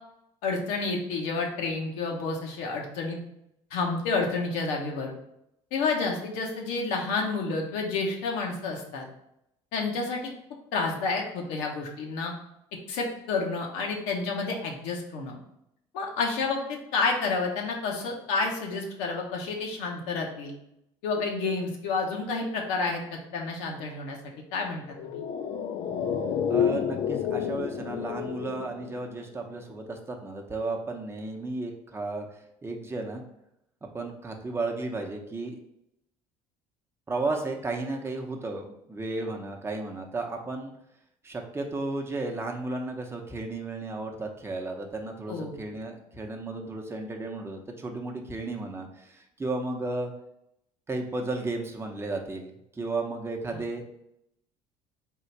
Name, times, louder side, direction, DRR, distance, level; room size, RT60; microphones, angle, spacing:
voice 1, 0.4-3.2 3.7-5.1 5.7-9.1 9.7-10.3 10.7-12.3 12.9-15.4 15.9-20.5 21.0-25.2 45.3-45.5 53.5-53.6, left 4 dB, 85° left, 0 dB, 0.9 m, -30 dB
sound 1, 24.9-29.5 29.7-29.8, left 8 dB, 60° left, 0.5 m, -30 dB
voice 2, 26.5-32.3 32.6-33.2 33.9-35.6 37.1-40.7 41.2-50.1 50.9-53.8, right 2 dB, 20° right, 2 dB, 0.7 m, -34 dB
3.7 x 2.5 x 4.3 m, 0.79 s
supercardioid pair, 95°, 13 cm